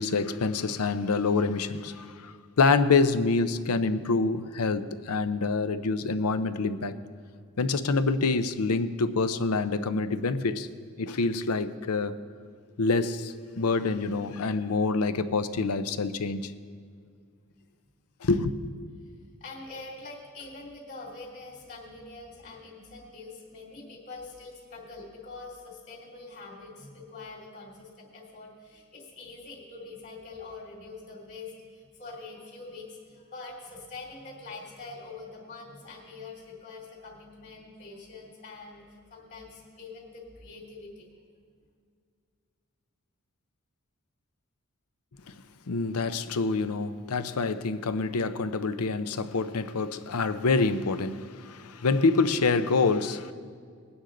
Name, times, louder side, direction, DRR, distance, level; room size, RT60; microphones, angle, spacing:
voice 1, 0.0-7.0 7.6-10.7 11.0-12.2 12.8-16.5 18.2-18.7 45.3-45.4 45.7-53.3, left 4 dB, 85° left, 0.6 m, -26 dB
voice 2, 19.4-38.8 39.1-41.1, left 3 dB, 50° left, 3.0 m, -44 dB
20.0 x 9.6 x 3.9 m
head